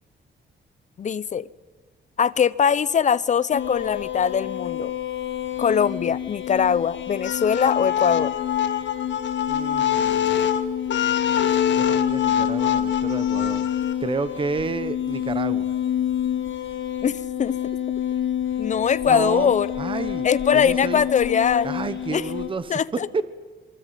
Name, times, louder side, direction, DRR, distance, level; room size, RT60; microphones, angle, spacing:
voice 1, 1.0-1.5 2.2-4.9 5.6-8.3 17.0-17.6 18.6-19.7 20.2-21.7 22.1-22.2 22.7-23.1, left 7 dB, 40° left, 17 dB, 0.8 m, -21 dB
sound 1, 3.5-22.5, left 10 dB, 85° left, 5.1 m, -28 dB
sound 2, 7.2-13.9, left 9 dB, 70° left, 1.7 m, -25 dB
voice 2, 9.5-10.4 11.7-13.7 14.0-15.7 19.1-19.5 19.8-20.3 20.5-21.0 21.6-22.8 23.1-23.2, right 4 dB, 25° right, 13 dB, 1.1 m, -30 dB
26.5 x 24.0 x 9.3 m, 1.3 s
wide cardioid pair, 170°, 20 cm